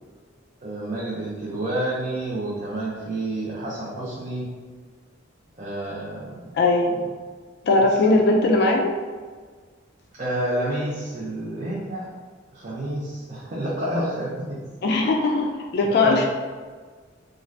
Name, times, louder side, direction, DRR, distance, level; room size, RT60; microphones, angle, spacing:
voice 1, 0.6-4.5 5.6-6.4 6.9-7.1 7.7-7.8 10.2-12.0 12.5-14.6 15.8-16.3, right 1 dB, 35° right, -7 dB, 0.5 m, -29 dB
voice 2, 6.5-6.9 7.7-8.9 14.8-15.5 15.7-16.3, left 2 dB, 55° left, 1 dB, 0.3 m, -19 dB
2.5 x 2.4 x 3.2 m, 1.5 s
head